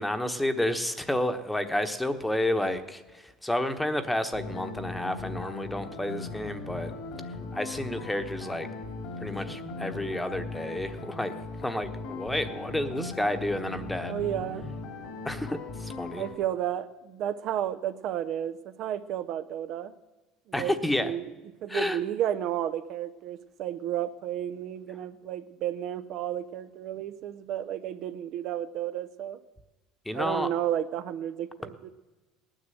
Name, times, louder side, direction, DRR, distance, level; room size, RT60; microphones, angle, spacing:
voice 1, 0.0-6.9 7.5-8.7 9.2-11.3 11.6-14.2 15.2-16.2 20.5-21.1 21.7-22.0 30.0-30.5, left 1 dB, 5° left, 9 dB, 1.2 m, -30 dB
sound 1, 4.3-16.3, left 3 dB, 70° left, 3.1 m, -39 dB
voice 2, 14.1-14.7 16.1-19.9 20.5-21.3 21.6-29.4 30.1-31.9, right 11 dB, 60° right, 10 dB, 0.7 m, -32 dB
18.0 x 10.0 x 7.8 m, 1.2 s
supercardioid pair, 110°, 0 cm